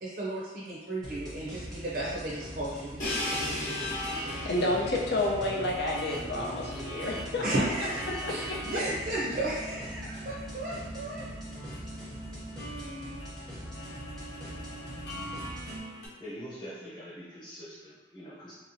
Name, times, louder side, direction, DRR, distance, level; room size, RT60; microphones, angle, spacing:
voice 1, 0.0-3.1 7.4-11.2, right 1 dB, 50° right, -5 dB, 0.5 m, -34 dB
sound 1, 1.0-15.8, equal, 5° left, 0.8 m, -43 dB
sound 2, 3.0-16.1, equal, 85° left, 0.9 m, -41 dB
Crash cymbal, 3.0-6.8, left 1 dB, 45° left, 0.9 m, -38 dB
voice 2, 4.4-7.4 8.2-8.3 8.7-8.8, left 1 dB, 65° left, -2 dB, 0.6 m, -29 dB
voice 3, 16.2-18.5, equal, 25° left, -10 dB, 1.0 m, -44 dB
3.1 x 2.8 x 2.6 m, 1.3 s
head